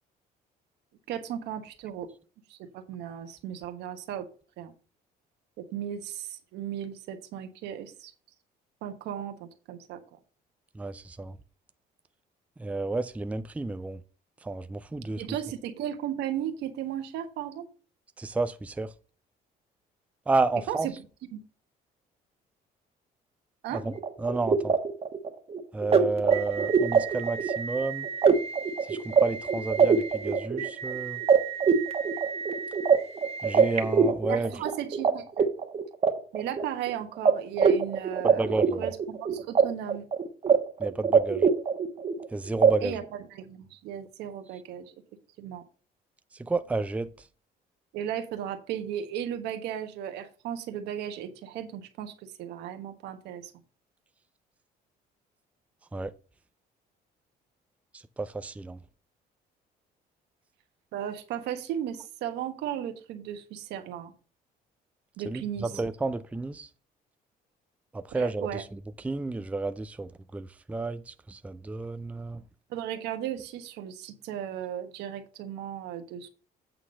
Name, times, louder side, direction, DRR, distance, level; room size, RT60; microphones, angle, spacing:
voice 1, 1.1-2.1 2.5-4.3 4.6-4.7 5.6-8.1 8.8-10.0 15.2-17.6 20.7-20.9 21.3-21.4 23.6-23.8 34.3-35.5 36.3-40.0 42.8-44.9 45.4-45.6 47.9-53.5 60.9-64.1 65.2-65.7 68.1-68.6 72.7-76.3, right 10 dB, 85° right, 1.3 m, -35 dB
voice 2, 10.7-11.3 12.6-14.0 14.4-15.2 18.2-18.9 20.3-20.9 23.7-23.9 24.2-24.8 25.7-28.1 28.9-31.2 33.4-34.5 38.2-38.9 40.8-41.5 42.3-43.0 46.4-47.1 55.9-56.1 58.2-58.8 65.3-66.7 67.9-72.4, right 3 dB, 10° right, 0.4 m, -31 dB
sound 1, 24.0-35.1 35.4-36.9 37.3-37.4 37.6-39.6 39.9-40.6 40.8-42.2 42.6-42.7, right 6 dB, 35° right, 1.2 m, -24 dB
8.5 x 3.8 x 6.3 m
cardioid pair, 110°, 17 cm